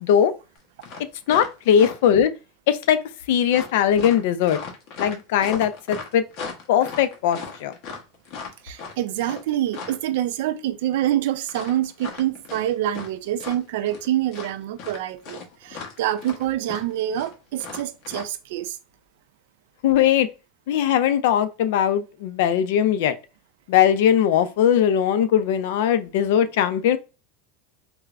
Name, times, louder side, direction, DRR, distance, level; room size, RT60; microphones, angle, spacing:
voice 1, 0.0-0.3 1.3-2.3 2.7-3.0 3.3-4.6 5.0-6.2 6.7-7.7 19.8-20.3 20.7-23.2 23.7-27.0, left 9 dB, 70° left, 0.4 m, -20 dB
sound 1, 0.6-0.7 0.8-2.2 3.5-10.1 11.5-13.1 13.4-14.1 14.3-18.2, left 5 dB, 45° left, 0.9 m, -37 dB
voice 2, 8.6-18.8, right 12 dB, 70° right, 0.4 m, -26 dB
4.4 x 2.0 x 2.4 m
supercardioid pair, 155°, 0 cm